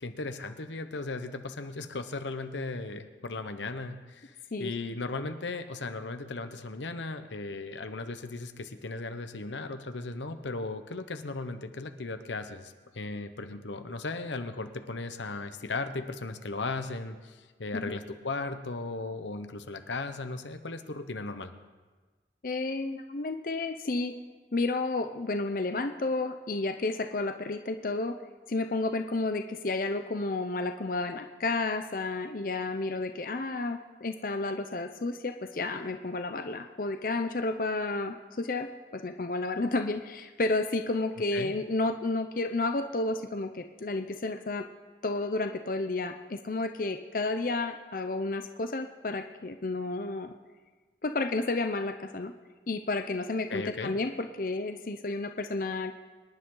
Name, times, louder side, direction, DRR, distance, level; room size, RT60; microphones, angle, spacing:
voice 1, 0.0-21.5 41.3-41.5 53.5-53.9, left 3 dB, 90° left, 9 dB, 1.0 m, -37 dB
voice 2, 22.4-24.1 24.5-28.2 28.5-44.7 45.0-50.3 51.0-52.3 52.7-55.9, left 2 dB, 50° left, 7 dB, 0.6 m, -31 dB
25.0 x 10.5 x 3.9 m, 1.3 s
head